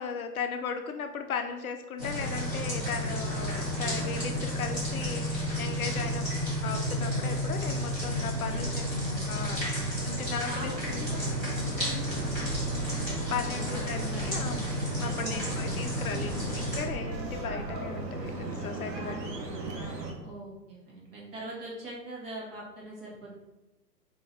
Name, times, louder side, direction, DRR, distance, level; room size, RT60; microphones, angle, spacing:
voice 1, 0.0-6.3 6.6-8.9 9.3-9.6 10.0-11.0 13.3-14.7 15.0-19.2 19.7-20.1, left 6 dB, 60° left, 6 dB, 0.5 m, -37 dB
sound 1, 2.0-16.8, equal, 5° right, 0.5 m, -32 dB
voice 2, 8.5-9.3 9.7-12.5 13.3-14.3 15.1-15.9 18.9-19.7 20.2-23.4, right 1 dB, 35° right, -4 dB, 1.4 m, -43 dB
sound 2, 10.6-20.1, right 2 dB, 80° right, 1.1 m, -38 dB
3.8 x 2.8 x 3.9 m, 1.0 s
hypercardioid pair, 140°, 49 cm